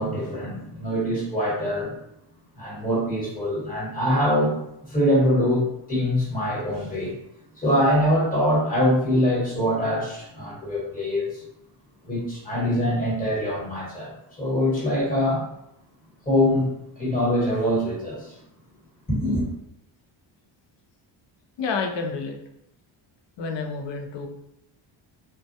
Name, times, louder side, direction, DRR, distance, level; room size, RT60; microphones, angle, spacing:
voice 1, 0.0-1.9 2.5-4.5 4.8-5.6 5.9-7.1 7.6-11.4 12.0-14.1 14.4-15.4 16.2-18.3 19.1-19.4, equal, 15° left, -6 dB, 1.2 m, -23 dB
voice 2, 21.6-22.4 23.4-24.3, left 4 dB, 60° left, 3 dB, 0.6 m, -29 dB
2.2 x 2.2 x 2.7 m, 0.80 s
cardioid pair, 115°, 49 cm